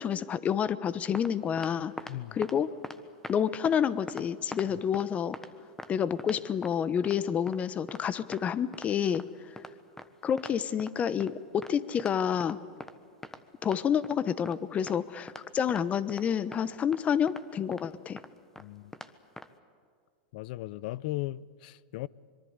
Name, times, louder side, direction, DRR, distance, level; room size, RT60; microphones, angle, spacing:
voice 1, 0.0-1.9 2.3-2.7 3.3-5.4 5.9-9.5 10.2-12.6 13.6-18.2, left 8 dB, 25° left, 1.1 m, -29 dB
sound 1, 0.9-1.3 1.6-2.2 2.4-2.6 2.8-3.4 3.6-3.8 4.1-5.1 5.3-5.5 5.8-5.9 6.2-6.7 7.0-7.2 7.5-7.6 7.9-8.0 8.3-8.4 8.7-8.9 9.1-9.3 9.6-9.7 10.0-10.1 10.4-10.9 11.2-11.3 11.6-11.7 12.0-12.1 12.4-12.9 13.2-14.2 14.5-14.6 14.9-15.0 15.3-15.4 15.7-15.8 16.1-16.3 16.5-16.6 16.9-17.0 17.3-17.4 17.7-17.8 18.2-18.3 18.6-18.7 18.9-19.1 19.4-19.5, left 2 dB, 10° left, 1.3 m, -43 dB
voice 2, 18.6-18.9 20.3-22.1, left 17 dB, 60° left, 0.6 m, -37 dB
25.0 x 22.5 x 8.2 m
hypercardioid pair, 120°, 5 cm